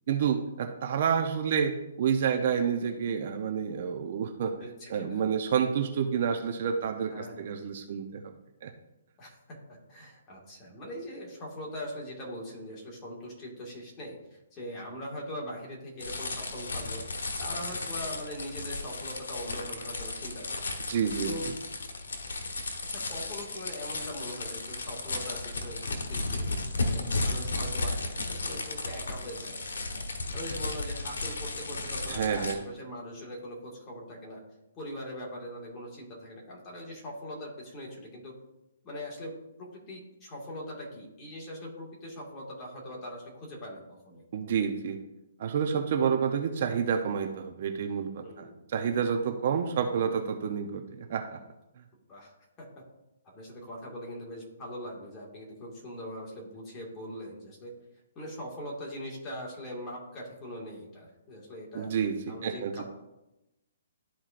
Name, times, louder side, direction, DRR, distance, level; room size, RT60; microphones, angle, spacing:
voice 1, 0.1-4.5 4.9-8.3 8.6-8.7 20.9-21.3 32.0-32.6 44.3-45.0 45.4-51.4 61.7-62.1 62.4-62.8, right 7 dB, 50° right, 5 dB, 0.6 m, -29 dB
voice 2, 4.5-5.2 7.1-7.5 9.2-17.0 17.4-20.7 21.2-21.5 22.8-29.6 29.9-34.4 34.8-38.3 38.8-44.2 48.2-48.6 49.5-49.7 52.1-52.7 53.2-57.7 58.2-61.9 62.3-62.8, equal, 20° left, -3 dB, 1.9 m, -41 dB
sound 1, 16.0-32.5, left 2 dB, 90° left, 1.2 m, -34 dB
12.5 x 4.4 x 2.5 m, 0.95 s
hypercardioid pair, 160°, 0 cm